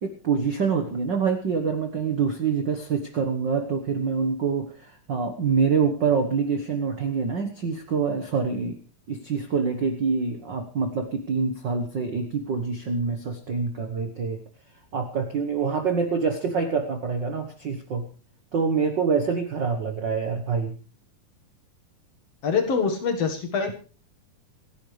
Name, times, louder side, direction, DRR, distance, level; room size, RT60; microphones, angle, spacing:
voice 1, 0.0-8.8 9.1-14.4 14.9-18.1 18.5-20.8, right 5 dB, 65° right, 6 dB, 1.1 m, -26 dB
voice 2, 22.4-23.7, left 5 dB, 55° left, 6 dB, 2.3 m, -24 dB
27.0 x 10.5 x 3.3 m, 0.37 s
omnidirectional pair, 4.0 m